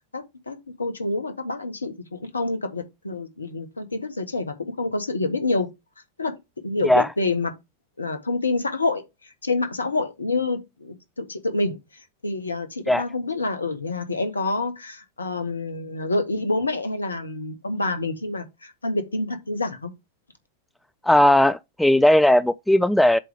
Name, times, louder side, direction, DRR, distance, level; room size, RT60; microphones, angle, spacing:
voice 1, 0.1-5.7 6.2-6.3 6.6-7.5 8.0-11.8 12.2-19.9, left 2 dB, 75° left, 1.2 m, -27 dB
voice 2, 21.0-23.2, left 1 dB, 5° left, 0.3 m, -17 dB
7.6 x 3.3 x 4.9 m
figure-of-eight pair, 90°, 0 cm